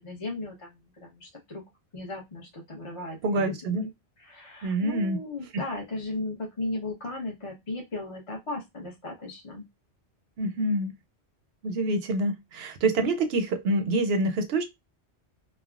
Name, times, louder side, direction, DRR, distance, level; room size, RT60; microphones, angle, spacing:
voice 1, 0.0-1.6 1.9-3.9 4.2-9.6, left 2 dB, 30° left, 0.7 m, -36 dB
voice 2, 3.2-3.8 4.6-5.2 10.4-10.9 11.6-14.6, right 2 dB, 65° right, 0.8 m, -26 dB
3.3 x 2.0 x 2.3 m
omnidirectional pair, 1.2 m